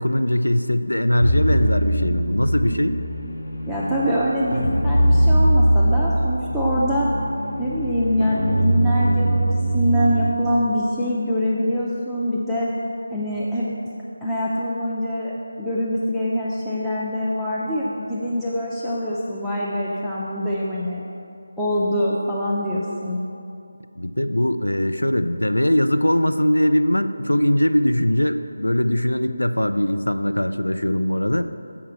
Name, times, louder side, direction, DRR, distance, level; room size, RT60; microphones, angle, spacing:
voice 1, 0.0-3.0 24.0-31.5, left 1 dB, 80° left, 10 dB, 0.4 m, -21 dB
sound 1, 1.2-10.3, right 1 dB, 60° left, 0.9 m, -21 dB
voice 2, 3.7-7.1 7.6-12.7 13.1-13.7 14.2-21.0 21.6-23.2, equal, ahead, -11 dB, 0.5 m, -24 dB
7.1 x 4.8 x 7.0 m, 2.6 s
figure-of-eight pair, 160°, 0 cm